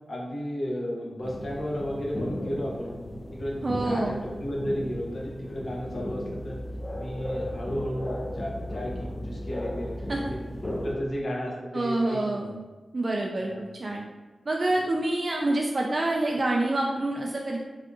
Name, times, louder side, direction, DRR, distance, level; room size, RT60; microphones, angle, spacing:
voice 1, 0.1-3.0 3.3-6.6 6.9-10.4 10.8-12.5 13.4-13.6, equal, 65° left, -3 dB, 0.8 m, -33 dB
sound 1, 1.2-10.9, left 1 dB, 35° left, 0.5 m, -35 dB
voice 2, 3.6-4.2 10.1-10.3 11.7-12.6 12.9-14.0 14.5-17.6, right 2 dB, 45° right, -1 dB, 0.3 m, -27 dB
3.4 x 2.5 x 2.6 m, 1.2 s
cardioid pair, 40°, 0 cm